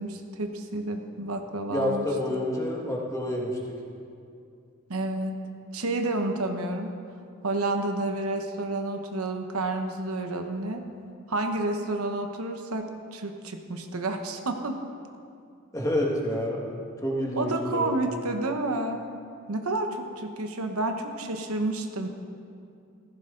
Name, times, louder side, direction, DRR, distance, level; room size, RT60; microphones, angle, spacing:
voice 1, 0.0-2.1 4.9-5.4 5.7-6.9 7.4-10.8 11.3-14.9 17.4-19.0 19.5-22.1, right 2 dB, 85° right, 5 dB, 1.1 m, -30 dB
voice 2, 1.7-3.8 15.7-16.8 17.0-18.0, left 1 dB, 15° left, -2 dB, 1.7 m, -28 dB
15.0 x 14.5 x 3.9 m, 2.5 s
head